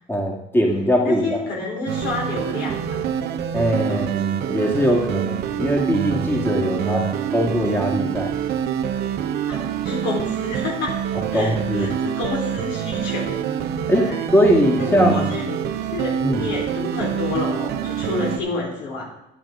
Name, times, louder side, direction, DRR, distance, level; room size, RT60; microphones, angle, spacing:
voice 1, 0.1-1.2 3.5-8.3 11.3-11.9 13.9-15.2 16.2-16.4, equal, 15° left, -1 dB, 2.1 m, -21 dB
voice 2, 1.0-3.0 3.8-4.0 6.7-7.1 9.5-11.0 11.3-13.4 14.0-14.2 14.8-15.6 15.9-19.0, left 3 dB, 85° left, -2 dB, 3.9 m, -29 dB
sound 1, 1.9-18.4, right 9 dB, 75° right, 1.0 m, -26 dB
12.0 x 8.6 x 3.7 m, 0.92 s
cardioid pair, 110°, 17 cm